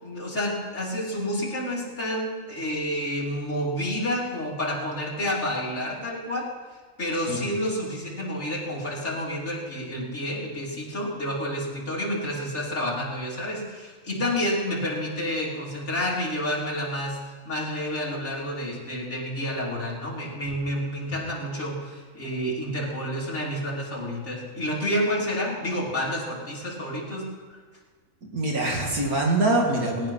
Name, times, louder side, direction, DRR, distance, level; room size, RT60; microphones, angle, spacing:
voice 1, 0.0-6.5 7.0-17.2 17.4-27.3, equal, 50° left, -4 dB, 3.3 m, -29 dB
voice 2, 28.3-30.1, right 2 dB, 70° right, -1 dB, 2.5 m, -24 dB
19.5 x 10.0 x 5.5 m, 1.5 s
omnidirectional pair, 1.6 m